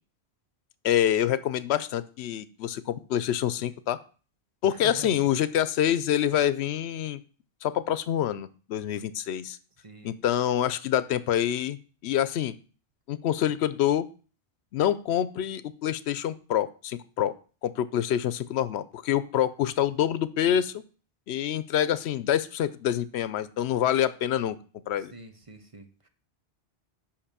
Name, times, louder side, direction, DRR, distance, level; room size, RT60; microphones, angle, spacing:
voice 1, 0.8-4.0 4.6-7.2 7.6-9.6 10.0-12.5 13.1-14.0 14.7-17.3 17.6-20.8 21.3-24.6 24.9-25.1, left 10 dB, 85° left, 15 dB, 0.9 m, -26 dB
voice 2, 4.7-5.1 9.8-10.2 25.0-26.1, right 3 dB, 35° right, 7 dB, 0.9 m, -45 dB
5.8 x 5.2 x 6.7 m, 0.38 s
omnidirectional pair, 1.1 m